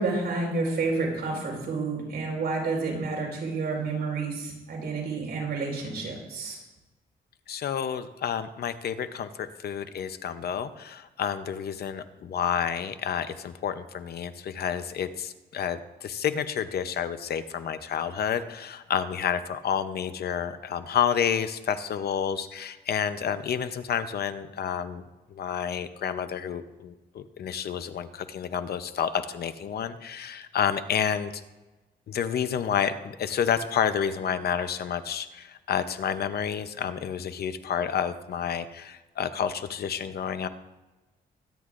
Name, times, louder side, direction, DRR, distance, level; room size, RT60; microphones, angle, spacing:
voice 1, 0.0-6.6, right 3 dB, 70° right, -1 dB, 4.6 m, -30 dB
voice 2, 7.5-25.0 25.3-31.4 32.1-40.5, left 8 dB, 65° left, 11 dB, 0.7 m, -30 dB
23.0 x 10.0 x 2.5 m, 1.1 s
wide cardioid pair, 160°, 18 cm